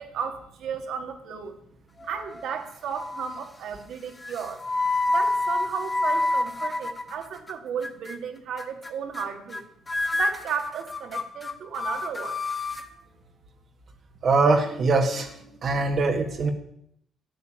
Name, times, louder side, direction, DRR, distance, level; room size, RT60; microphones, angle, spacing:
voice 1, 0.0-1.6 2.0-4.6 5.1-9.6 10.1-12.4, right 7 dB, 75° right, 6 dB, 2.2 m, -34 dB
sound 1, 2.0-2.6 2.9-3.5 4.2-7.5 7.8-8.2 8.6-8.9 9.1-9.6 9.9-12.9, left 2 dB, 20° left, 1.7 m, -28 dB
voice 2, 14.2-16.5, right 3 dB, 55° right, 2 dB, 1.7 m, -23 dB
13.5 x 9.6 x 8.8 m, 0.72 s
cardioid pair, 90°, 0 cm